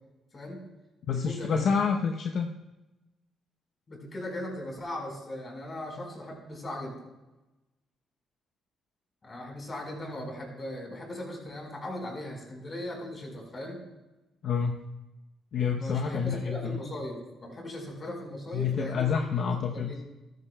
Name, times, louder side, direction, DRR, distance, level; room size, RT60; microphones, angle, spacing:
voice 1, 0.3-0.6 1.1-1.7 3.9-7.0 9.2-13.8 15.8-19.1 19.4-20.0, left 1 dB, 35° left, 1 dB, 4.5 m, -38 dB
voice 2, 1.0-2.5 14.4-14.8 15.5-16.8 18.5-19.9, left 6 dB, 65° left, 3 dB, 0.8 m, -28 dB
14.5 x 13.0 x 2.3 m, 1.0 s
cardioid pair, 90°, 0 cm